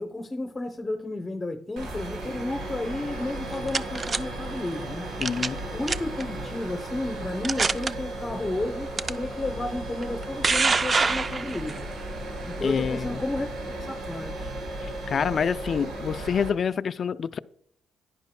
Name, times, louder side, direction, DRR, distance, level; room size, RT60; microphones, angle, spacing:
voice 1, 0.0-5.1 5.7-11.9 12.5-14.5, left 2 dB, 20° left, 0.8 m, -32 dB
sound 1, 1.8-16.5, right 1 dB, 90° right, 3.5 m, -35 dB
sound 2, 3.3-4.2 5.2-5.6 5.9-6.2 6.9-7.0 7.4-7.9 9.0-9.1 10.0-11.8, right 4 dB, 35° right, 0.4 m, -25 dB
voice 2, 5.2-5.6 12.6-13.2 15.1-17.4, left 7 dB, 50° left, 0.4 m, -27 dB
10.5 x 10.5 x 2.2 m
cardioid pair, 105°, 0 cm